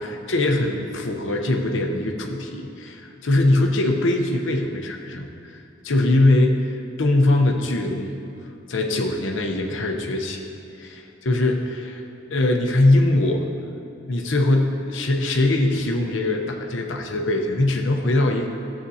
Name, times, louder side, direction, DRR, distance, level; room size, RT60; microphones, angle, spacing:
voice 1, 0.0-5.3 5.8-8.2 8.7-10.4 10.8-12.0 12.3-13.5 14.1-18.5, left 2 dB, 80° left, 2 dB, 0.8 m, -21 dB
14.0 x 7.6 x 2.8 m, 2.6 s
head